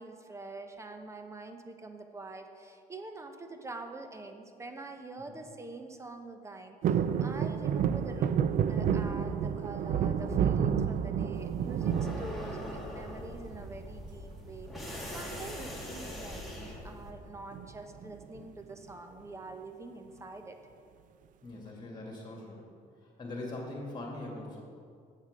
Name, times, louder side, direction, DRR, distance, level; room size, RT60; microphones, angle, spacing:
voice 1, 0.0-20.6, right 3 dB, 15° right, 6 dB, 0.8 m, -45 dB
sound 1, 6.8-13.0 13.4-14.0 15.3-15.7 16.0-16.1 16.4-16.7 17.5-18.4 18.9-19.0, right 8 dB, 50° right, 0.4 m, -30 dB
sound 2, 11.3-17.1, left 1 dB, ahead, 1.7 m, -42 dB
voice 2, 14.8-15.2 21.4-22.6 23.0-24.6, left 2 dB, 25° left, -1 dB, 2.4 m, -42 dB
7.6 x 7.2 x 5.1 m, 2.3 s
cardioid pair, 110°, 17 cm